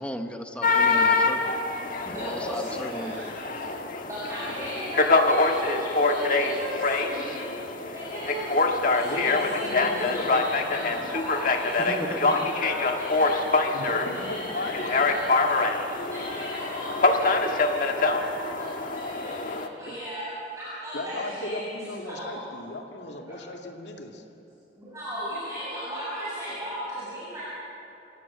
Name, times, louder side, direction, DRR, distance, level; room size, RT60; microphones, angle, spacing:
voice 1, 0.0-1.5 2.1-3.3 11.8-12.4, equal, 5° left, 5 dB, 1.1 m, -36 dB
sound 1, 0.6-19.7, left 3 dB, 50° left, 1.4 m, -25 dB
voice 2, 2.0-3.3 4.1-8.6 8.8-15.8 16.1-20.3 20.6-21.6 22.0-22.4 23.3-23.4 24.8-27.4, equal, 15° right, -11 dB, 7.6 m, -36 dB
voice 3, 9.0-11.0 13.7-15.5 19.9-20.0 20.9-24.2, left 2 dB, 70° left, 2 dB, 2.3 m, -36 dB
27.0 x 17.5 x 7.4 m, 3.0 s
head